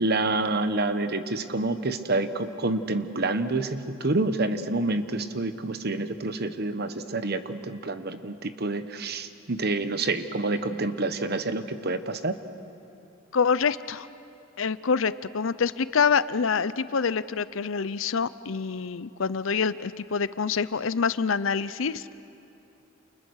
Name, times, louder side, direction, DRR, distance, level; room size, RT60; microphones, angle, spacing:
voice 1, 0.0-12.3, right 2 dB, 50° right, 10 dB, 1.1 m, -28 dB
voice 2, 13.3-14.1 14.6-22.0, left 5 dB, 70° left, 16 dB, 0.6 m, -26 dB
29.5 x 28.5 x 6.5 m, 2.7 s
head